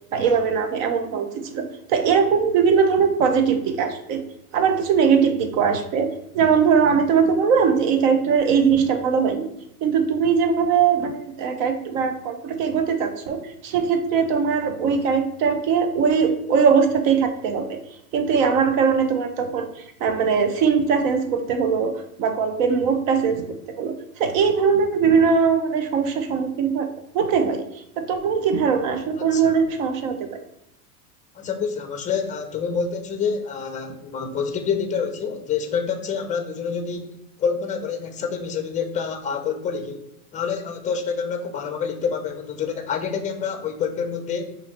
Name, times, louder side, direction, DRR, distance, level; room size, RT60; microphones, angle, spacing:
voice 1, 0.1-4.2 4.5-9.5 9.8-17.8 18.1-26.9 27.1-27.6 28.0-30.4, right 6 dB, 60° right, 7 dB, 0.9 m, -21 dB
voice 2, 29.2-29.5 31.3-40.1 40.3-44.5, left 6 dB, 15° left, 6 dB, 0.5 m, -27 dB
5.7 x 2.7 x 2.9 m, 0.82 s
hypercardioid pair, 110°, 45 cm